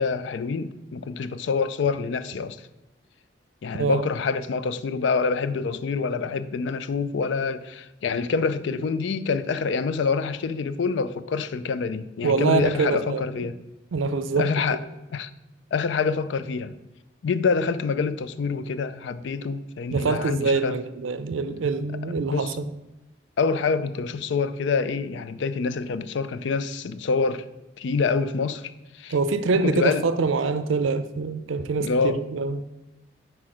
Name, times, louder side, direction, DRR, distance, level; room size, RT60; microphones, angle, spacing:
voice 1, 0.0-2.7 3.6-13.6 14.4-14.8 15.1-15.3 15.7-16.7 17.2-20.8 22.2-22.6 23.4-27.5 27.8-29.1 29.5-30.1 31.8-32.2, left 5 dB, 70° left, 0.4 m, -26 dB
voice 2, 12.2-13.2 13.9-14.8 19.9-22.5 29.1-32.6, right 4 dB, 85° right, 0.5 m, -25 dB
4.9 x 4.7 x 6.0 m
head